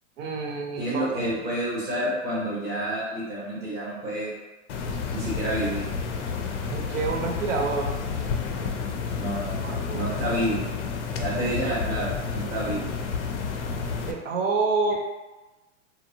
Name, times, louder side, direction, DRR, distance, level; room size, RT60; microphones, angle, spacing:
voice 1, 0.2-1.0 6.7-7.9 9.6-10.1 14.1-14.9, right 4 dB, 80° right, 2 dB, 0.7 m, -27 dB
voice 2, 0.8-4.3 5.1-5.9 9.1-10.6 11.2-12.9, right 1 dB, 10° right, -7 dB, 0.5 m, -29 dB
sound 1, 4.7-14.1, left 5 dB, 65° left, 0.5 m, -30 dB
2.7 x 2.0 x 2.6 m, 1.1 s
hypercardioid pair, 145°, 38 cm